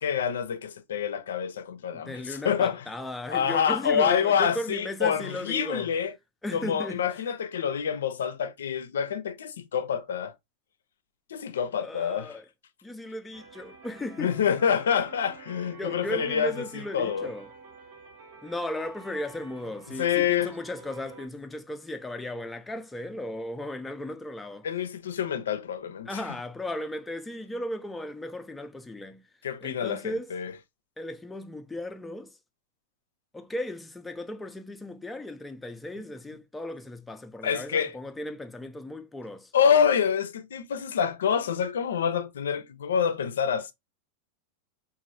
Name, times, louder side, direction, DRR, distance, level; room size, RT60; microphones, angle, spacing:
voice 1, 0.0-2.9 3.3-6.1 6.5-10.3 11.3-12.4 14.2-16.5 16.9-17.3 20.0-20.5 24.6-26.2 29.4-30.5 37.4-38.0 39.5-43.7, left 7 dB, 90° left, 0.4 m, -27 dB
voice 2, 1.9-5.9 6.4-7.1 11.8-12.5 12.8-14.3 15.8-17.5 18.4-24.7 26.1-29.2 29.6-30.3 31.0-32.3 33.3-39.5, left 1 dB, 10° left, 0.4 m, -36 dB
sound 1, 13.3-21.3, right 3 dB, 70° right, 1.1 m, -49 dB
3.1 x 2.4 x 2.5 m
hypercardioid pair, 120°, 0 cm